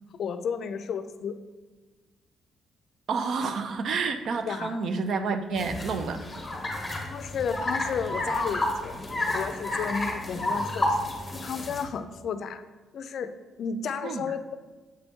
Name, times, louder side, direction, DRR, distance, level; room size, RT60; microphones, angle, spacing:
voice 1, 0.1-1.4 4.5-4.8 7.1-9.0 9.3-11.0 11.3-12.6 12.9-13.3 13.6-14.5, left 6 dB, 60° left, 10 dB, 0.4 m, -32 dB
voice 2, 3.1-6.2 14.0-14.2, right 4 dB, 60° right, 8 dB, 0.5 m, -29 dB
sound 1, 5.6-11.9, left 1 dB, 15° left, 1.0 m, -31 dB
7.5 x 4.0 x 3.6 m, 1.3 s
cardioid pair, 125°, 0 cm